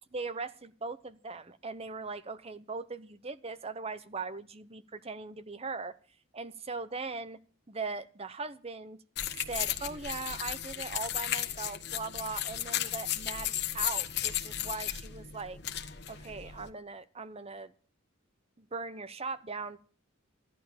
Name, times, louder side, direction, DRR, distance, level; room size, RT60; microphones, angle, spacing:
voice 1, 0.1-5.9 6.3-7.4 7.7-9.0 9.5-15.6 16.1-17.7 18.6-19.8, right 4 dB, 30° right, 14 dB, 0.8 m, -39 dB
sound 1, 9.2-16.7, left 11 dB, 55° left, 1.3 m, -35 dB
14.5 x 11.0 x 7.2 m, 0.43 s
head